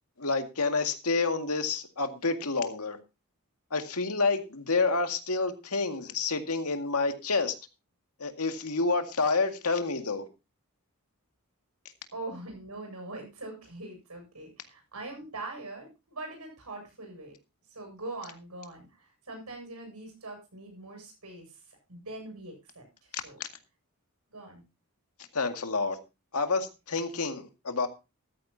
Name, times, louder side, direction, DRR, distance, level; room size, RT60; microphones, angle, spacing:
voice 1, 0.2-3.0 3.7-7.5 8.2-10.3 25.3-26.0 26.3-27.9, left 3 dB, 80° left, 2.0 m, -28 dB
voice 2, 12.1-17.3 17.7-23.4 24.3-24.6, right 2 dB, 90° right, 7.7 m, -42 dB
14.5 x 13.5 x 2.7 m
head